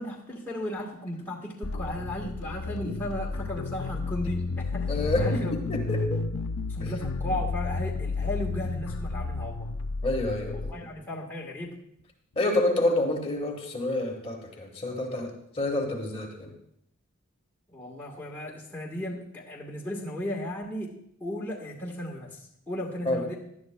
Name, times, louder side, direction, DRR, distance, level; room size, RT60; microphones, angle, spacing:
voice 1, 0.0-5.5 6.7-9.7 10.7-11.8 17.7-20.9 21.2-23.4, left 1 dB, 10° left, -5 dB, 1.3 m, -35 dB
sound 1, 1.6-10.7, left 3 dB, 80° left, 0.5 m, -31 dB
voice 2, 4.9-6.2 6.8-6.9 10.0-10.7 12.4-16.5 23.0-23.2, left 1 dB, 25° left, 1 dB, 1.4 m, -28 dB
17.5 x 11.0 x 2.2 m, 0.72 s
head